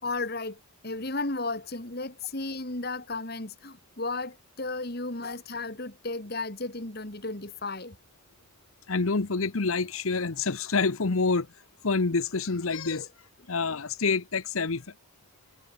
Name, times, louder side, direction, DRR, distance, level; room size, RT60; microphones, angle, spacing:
voice 1, 0.0-0.6 0.8-8.0 13.0-13.1, left 3 dB, 45° left, 2.3 m, -34 dB
voice 2, 8.9-11.5 11.8-13.1 13.5-14.8, left 4 dB, 75° left, 1.0 m, -27 dB
head